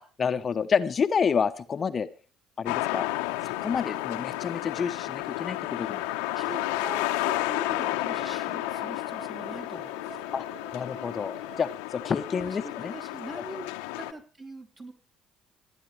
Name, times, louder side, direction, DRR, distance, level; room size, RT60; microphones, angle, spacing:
voice 1, 0.0-2.1 2.6-3.1 3.4-6.0 10.3-10.4 10.7-12.9, left 6 dB, 40° left, 10 dB, 0.8 m, -29 dB
sound 1, 2.7-14.1, left 16 dB, 80° left, 0.9 m, -32 dB
sound 2, 5.8-11.7, right 3 dB, 10° right, 1.3 m, -48 dB
voice 2, 6.4-10.2 12.3-13.7 14.0-14.9, right 2 dB, 35° right, 2 dB, 3.5 m, -42 dB
27.5 x 9.6 x 3.3 m, 0.36 s
hypercardioid pair, 55°, 0 cm